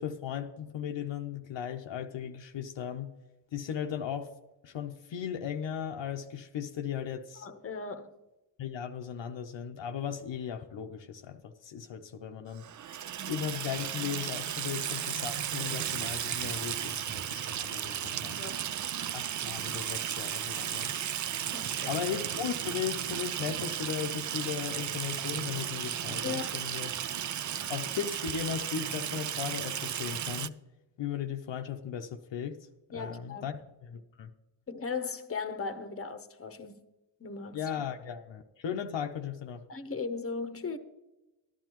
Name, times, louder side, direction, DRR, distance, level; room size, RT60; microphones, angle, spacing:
voice 1, 0.0-3.2 3.5-4.3 4.6-7.5 8.6-12.7 13.3-18.4 19.1-21.1 21.9-26.9 27.7-30.5 31.0-32.7 32.9-34.3 37.5-39.6, left 8 dB, 65° left, 0.8 m, -37 dB
voice 2, 7.4-8.1 18.4-18.6 21.5-22.0 26.2-26.5 32.9-33.5 34.7-36.9 37.2-37.6 39.7-40.8, left 4 dB, 30° left, 0.9 m, -37 dB
Water tap faucet / Sink (filling or washing), 12.6-30.5, right 10 dB, 40° right, 0.4 m, -35 dB
13.5 x 10.5 x 3.0 m
supercardioid pair, 50°, 48 cm